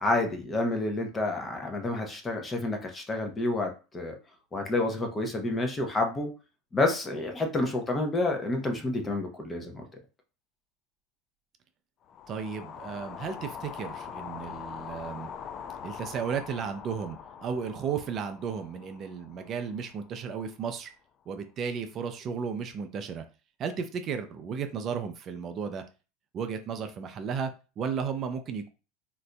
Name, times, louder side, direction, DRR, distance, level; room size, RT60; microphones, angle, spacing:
voice 1, 0.0-4.2 4.5-6.3 6.7-9.8, left 2 dB, 20° left, 4 dB, 0.7 m, -29 dB
sound 1, 12.1-20.3, left 7 dB, 40° left, 0.4 m, -43 dB
voice 2, 12.3-15.3 15.8-20.9 21.3-23.2 23.6-25.8 26.3-28.7, right 6 dB, 40° right, 7 dB, 0.4 m, -34 dB
3.8 x 2.5 x 2.2 m, 0.33 s
supercardioid pair, 115°, 0 cm